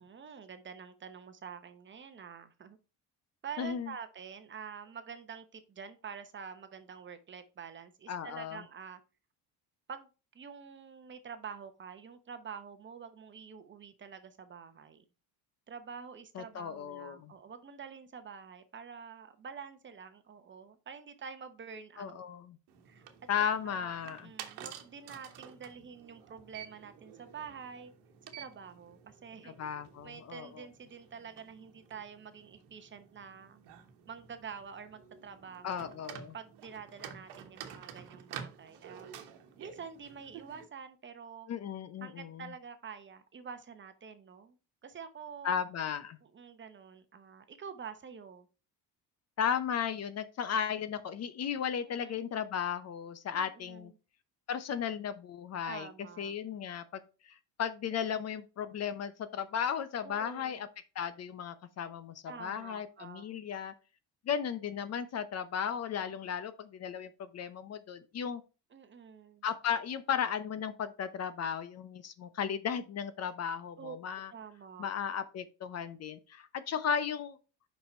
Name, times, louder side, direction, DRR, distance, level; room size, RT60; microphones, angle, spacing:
voice 1, 0.0-2.8 3.4-9.0 9.9-10.1 10.3-15.0 15.7-22.2 22.9-23.1 23.7-27.9 28.4-29.5 30.0-33.6 34.1-35.9 36.3-39.1 39.6-41.5 42.0-44.6 44.8-45.6 46.2-48.5 51.8-52.2 53.3-53.9 55.6-56.3 60.0-60.7 62.3-63.3 68.7-69.4 73.8-74.0 74.3-74.9, right 6 dB, 30° right, 0.9 m, -47 dB
voice 2, 3.6-3.9 8.1-8.6 16.3-17.3 22.0-22.6 23.3-24.3 29.4-30.7 35.6-36.3 41.5-42.4 45.4-46.2 49.4-53.9 54.5-55.9 56.2-60.7 60.9-62.1 62.4-63.7 64.3-68.4 69.4-74.3 74.8-77.4, left 8 dB, 40° left, 0.7 m, -35 dB
sound 1, 22.7-40.7, right 8 dB, 80° right, 1.3 m, -51 dB
5.6 x 5.5 x 4.3 m
cardioid pair, 135°, 39 cm